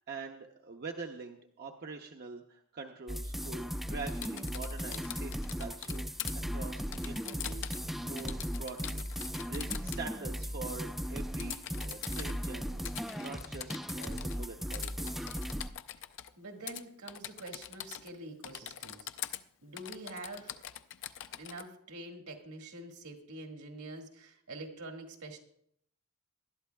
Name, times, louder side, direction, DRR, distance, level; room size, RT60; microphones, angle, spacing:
voice 1, 0.0-6.1 6.3-7.7 8.0-15.3, right 4 dB, 45° right, 2 dB, 0.7 m, -45 dB
sound 1, 3.1-15.7, equal, ahead, 0.4 m, -37 dB
Typing, 4.1-6.3 6.9-7.9 8.2-10.0 11.4-12.3 12.9-14.5 14.7-16.3 16.7-16.8 17.1-18.2 18.4-19.4 19.8-21.7, left 11 dB, 60° left, 0.5 m, -43 dB
voice 2, 16.4-19.1 19.6-20.6 21.4-25.4, right 2 dB, 75° right, 2 dB, 1.9 m, -46 dB
19.5 x 12.0 x 2.3 m, 0.70 s
head